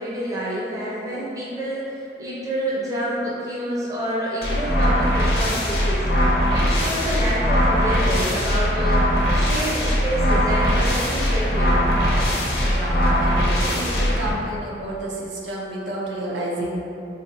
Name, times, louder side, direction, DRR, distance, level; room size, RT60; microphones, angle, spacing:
voice 1, 0.0-11.8, right 1 dB, 20° right, -6 dB, 0.5 m, -28 dB
sound 1, 4.4-14.3, equal, 60° left, 0.6 m, -20 dB
voice 2, 12.6-16.8, right 1 dB, 90° right, -3 dB, 0.6 m, -30 dB
4.1 x 2.5 x 2.8 m, 2.6 s
head